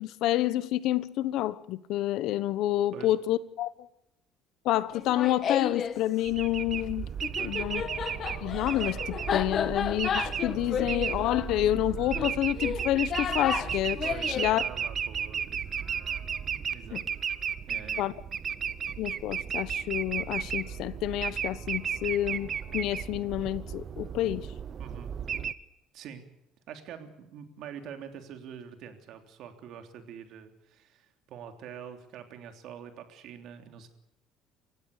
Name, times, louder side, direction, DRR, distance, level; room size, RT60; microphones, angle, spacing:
voice 1, 0.0-3.7 4.6-7.1 7.4-7.8 8.4-14.0 14.3-14.6 16.9-17.0 18.0-18.1 19.0-24.5, left 14 dB, 60° left, 1.1 m, -28 dB
Laughter, 4.9-6.0 7.2-14.5, left 7 dB, 35° left, 1.3 m, -33 dB
sound 1, 6.2-25.5, right 8 dB, 30° right, 0.9 m, -34 dB
sound 2, 7.4-11.4, left 13 dB, 80° left, 2.2 m, -48 dB
voice 2, 14.0-15.9 16.7-17.0 17.7-18.2 24.8-25.2 25.9-26.3 26.7-33.9, right 8 dB, 50° right, 3.3 m, -45 dB
28.5 x 16.0 x 6.6 m
cardioid pair, 170°, 0 cm